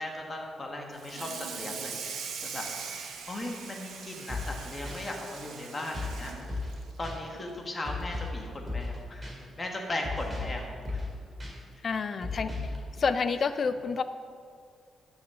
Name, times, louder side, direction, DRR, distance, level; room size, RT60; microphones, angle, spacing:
voice 1, 0.0-2.7 3.3-6.6 7.0-11.0 12.3-12.7, left 1 dB, 20° left, 1 dB, 1.6 m, -38 dB
Water tap faucet / Sink (filling or washing), 0.9-7.6 8.0-8.2 8.6-8.7 9.1-9.2 10.3-10.4 10.9-11.1, right 5 dB, 75° right, 1.2 m, -41 dB
sound 1, 4.3-4.6 4.9-5.0 5.9-6.2 6.5-6.8 7.0-7.2 7.8-8.4 8.7-9.0 9.2-9.3 10.0-10.6 10.8-11.1 11.4-11.5 12.2-12.8, left 3 dB, 15° right, 2.4 m, -34 dB
voice 2, 11.8-14.0, left 5 dB, 40° left, 11 dB, 0.5 m, -29 dB
11.5 x 6.5 x 6.9 m, 2.2 s
cardioid pair, 155°, 0 cm